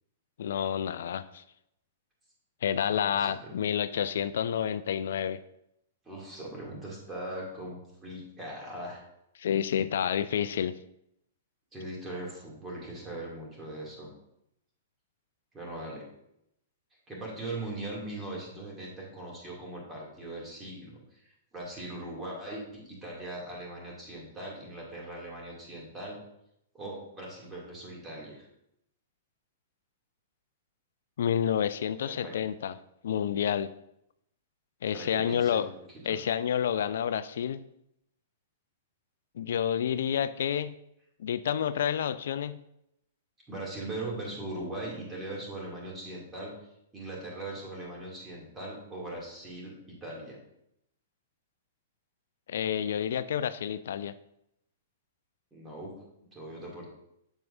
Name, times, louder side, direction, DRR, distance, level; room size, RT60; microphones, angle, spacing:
voice 1, 0.4-1.4 2.6-5.4 9.4-10.8 31.2-32.7 33.0-33.7 34.8-35.7 36.1-37.6 39.4-40.7 41.2-42.6 52.5-54.1, left 9 dB, 65° left, 14 dB, 0.3 m, -29 dB
voice 2, 2.8-3.6 6.0-9.0 11.7-14.1 15.5-16.0 17.1-26.2 26.7-28.5 32.0-32.4 34.9-35.7 36.0-36.2 43.5-46.5 46.9-49.7 50.0-50.4 55.5-55.9 56.3-56.9, right 1 dB, 15° right, -3 dB, 2.5 m, -40 dB
7.5 x 7.2 x 2.6 m, 0.79 s
figure-of-eight pair, 110°, 0 cm